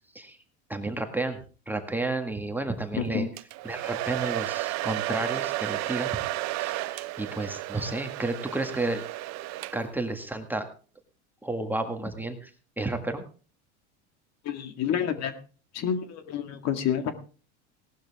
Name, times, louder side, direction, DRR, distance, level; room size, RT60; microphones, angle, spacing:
voice 1, 0.7-1.4 1.7-3.3 3.6-6.2 6.6-9.0 9.7-10.7 11.4-12.5 12.8-13.2, right 2 dB, 5° right, 5 dB, 1.8 m, -31 dB
voice 2, 3.0-3.3 14.4-15.3 15.7-17.1, left 8 dB, 45° left, 8 dB, 2.0 m, -29 dB
Domestic sounds home sounds, 3.4-10.1, right 18 dB, 50° right, 0.8 m, -33 dB
18.0 x 12.0 x 3.6 m, 0.38 s
supercardioid pair, 115°, 35 cm